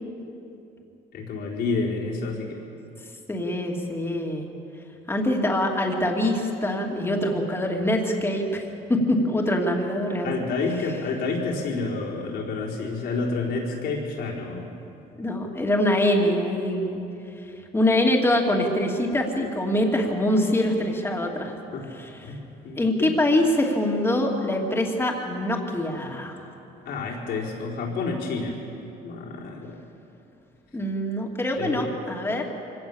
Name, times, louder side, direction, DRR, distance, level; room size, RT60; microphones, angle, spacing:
voice 1, 1.1-2.6 10.2-14.6 21.7-21.9 22.2-22.4 22.6-23.1 26.8-28.6 29.0-29.7 31.6-31.9, left 3 dB, 70° left, -2 dB, 4.4 m, -29 dB
voice 2, 3.3-4.5 5.1-8.6 8.9-10.3 15.2-17.0 17.7-21.5 21.9-22.4 22.8-26.4 30.7-32.5, left 1 dB, 15° left, 1 dB, 2.7 m, -24 dB
24.0 x 17.5 x 7.2 m, 2.9 s
cardioid pair, 110°, 17 cm